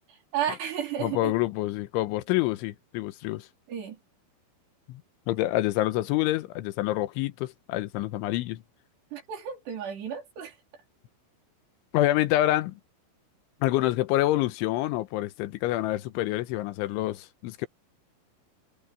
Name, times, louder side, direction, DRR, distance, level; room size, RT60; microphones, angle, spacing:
voice 1, 0.3-1.3 3.7-4.0 9.1-10.6, right 9 dB, 60° right, 6.0 m, -32 dB
voice 2, 1.0-3.5 4.9-5.0 5.3-8.6 11.9-12.8 13.6-17.7, left 16 dB, 90° left, 3.3 m, -27 dB
omnidirectional pair, 5.5 m